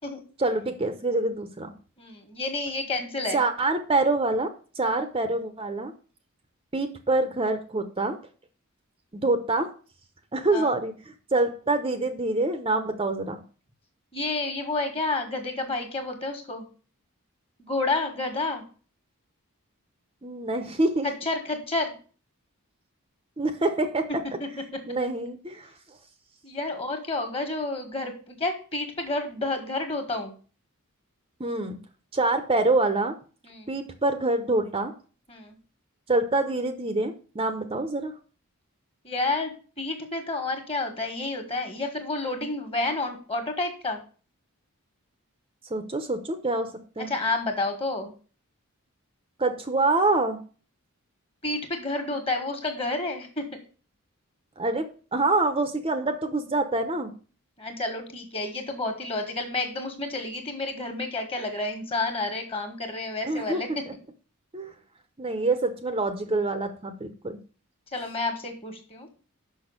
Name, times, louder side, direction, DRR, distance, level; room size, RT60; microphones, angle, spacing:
voice 1, 0.4-1.7 3.3-5.9 6.7-8.2 9.1-9.7 10.3-10.9 11.3-13.4 20.2-21.1 23.4-24.1 24.9-25.7 31.4-31.8 32.1-33.1 33.7-34.9 36.1-38.1 45.7-46.7 47.0-47.1 49.4-50.4 54.6-57.1 63.3-63.6 63.9-64.0 64.5-64.7 65.2-67.1, right 2 dB, 25° right, 7 dB, 0.8 m, -26 dB
voice 2, 2.0-3.4 10.5-10.7 14.1-16.6 17.6-18.6 21.0-21.9 26.4-30.3 33.4-33.7 35.3-35.6 39.0-44.0 47.1-48.1 51.4-53.5 57.6-63.7 67.9-69.1, left 2 dB, 25° left, 5 dB, 1.7 m, -30 dB
6.2 x 5.9 x 7.3 m, 0.39 s
head